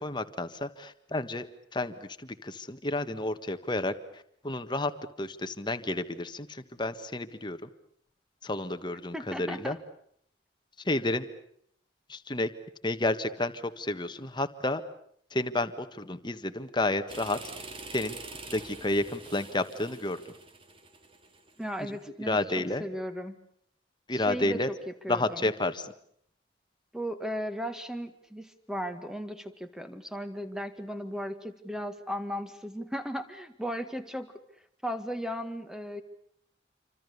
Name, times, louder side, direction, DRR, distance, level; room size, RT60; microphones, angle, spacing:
voice 1, 0.0-1.5 1.7-4.9 5.2-7.7 8.4-9.8 10.8-11.3 12.1-12.5 12.8-14.8 15.3-18.2 18.5-20.2 21.8-22.8 24.1-24.7 25.1-25.9, left 2 dB, 25° left, 9 dB, 1.5 m, -31 dB
voice 2, 9.1-9.8 21.6-23.4 24.1-25.5 26.9-34.3 34.8-36.0, equal, 5° right, 9 dB, 1.8 m, -36 dB
sound 1, 17.1-22.0, right 3 dB, 30° right, 2.2 m, -45 dB
27.5 x 25.5 x 6.8 m, 0.68 s
head